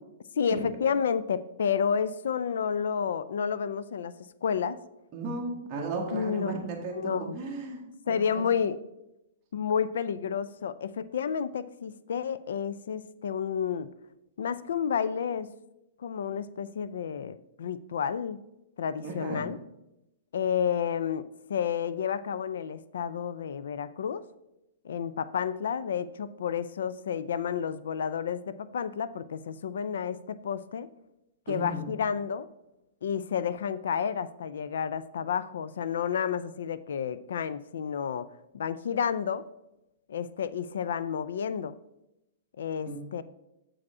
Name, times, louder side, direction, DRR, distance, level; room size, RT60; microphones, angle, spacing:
voice 1, 0.4-4.1 4.4-4.8 6.1-6.6 6.9-7.4 8.1-8.8 9.5-13.9 14.4-15.6 16.0-18.5 18.8-19.6 20.3-24.3 24.8-30.9 31.5-32.5 33.0-39.5 40.1-41.8 42.6-43.2, left 7 dB, 70° left, 15 dB, 0.3 m, -30 dB
voice 2, 5.1-7.8 8.1-8.4 19.0-19.5 31.5-31.9 42.9-43.0, right 2 dB, 20° right, -1 dB, 1.3 m, -35 dB
7.4 x 4.9 x 4.7 m, 0.90 s
hypercardioid pair, 170°, 0 cm